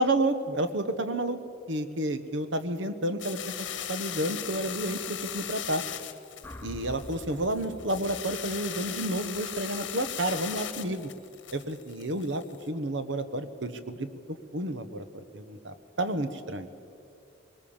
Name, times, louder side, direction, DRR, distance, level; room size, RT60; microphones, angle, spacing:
voice 1, 0.0-1.4 1.7-5.8 6.6-11.1 11.5-14.1 14.5-15.0 15.3-16.7, right 1 dB, 80° right, 11 dB, 1.3 m, -30 dB
sound 1, 3.2-12.6, left 10 dB, 85° left, 1.3 m, -38 dB
Dramatic Hit, 6.4-10.6, left 1 dB, 10° left, 0.7 m, -47 dB
21.5 x 20.0 x 7.2 m, 2.6 s
head